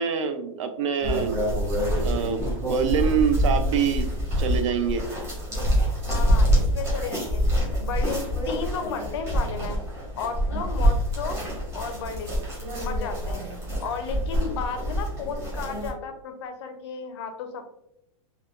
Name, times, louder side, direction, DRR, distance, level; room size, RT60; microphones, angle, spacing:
voice 1, 0.0-1.4 2.0-4.1 4.4-5.0, right 7 dB, 65° right, 8 dB, 0.4 m, -25 dB
sound 1, 1.0-15.9, equal, 15° right, 0.8 m, -26 dB
voice 2, 6.1-9.8 10.2-12.3 12.8-13.4 13.8-17.8, left 5 dB, 50° left, 6 dB, 0.4 m, -34 dB
3.4 x 2.2 x 2.3 m, 0.81 s
supercardioid pair, 170°, 18 cm